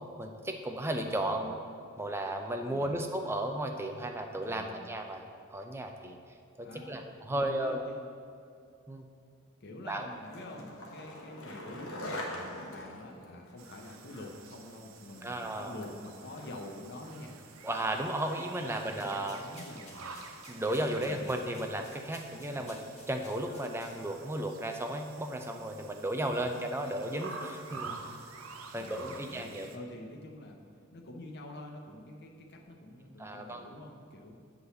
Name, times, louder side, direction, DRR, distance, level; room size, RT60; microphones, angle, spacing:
voice 1, 0.2-1.5 2.0-5.3 5.5-6.2 6.6-7.8 8.9-9.0 9.9-10.1 15.2-15.7 17.6-19.4 20.5-28.0 28.7-29.7 33.2-33.7, right 1 dB, 10° right, 4 dB, 0.5 m, -34 dB
voice 2, 1.2-1.5 2.7-3.0 4.5-5.0 6.6-7.0 7.3-8.1 9.6-17.3 18.6-20.2 20.9-21.3 22.5-22.7 26.3-26.5 27.7-27.9 28.7-30.6 30.9-34.4, left 1 dB, 50° left, 2 dB, 0.9 m, -47 dB
Skateboard, 9.9-18.2, left 1 dB, 80° left, 1.2 m, -45 dB
sound 1, 13.6-29.8, right 4 dB, 75° right, 0.6 m, -49 dB
sound 2, 19.0-24.3, left 2 dB, 35° left, 1.3 m, -56 dB
8.1 x 4.1 x 6.9 m, 2.3 s
head